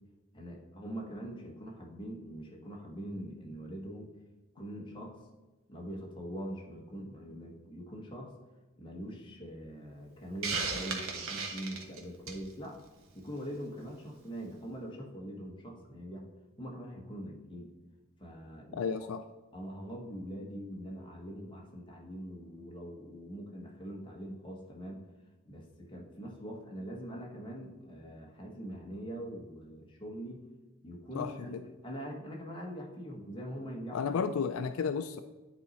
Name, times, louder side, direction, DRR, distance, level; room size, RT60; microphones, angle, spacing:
voice 1, 0.3-4.1 4.5-5.2 5.7-8.3 8.8-12.8 13.1-16.3 16.6-17.7 18.2-19.2 19.5-25.1 25.4-30.5 30.8-34.0, equal, 25° left, -1 dB, 1.3 m, -43 dB
Hiss, 10.4-12.5, right 4 dB, 70° right, 1.1 m, -35 dB
voice 2, 18.7-19.2 31.1-31.6 33.9-35.2, left 6 dB, 70° left, 10 dB, 0.3 m, -33 dB
9.6 x 4.1 x 4.1 m, 1.2 s
head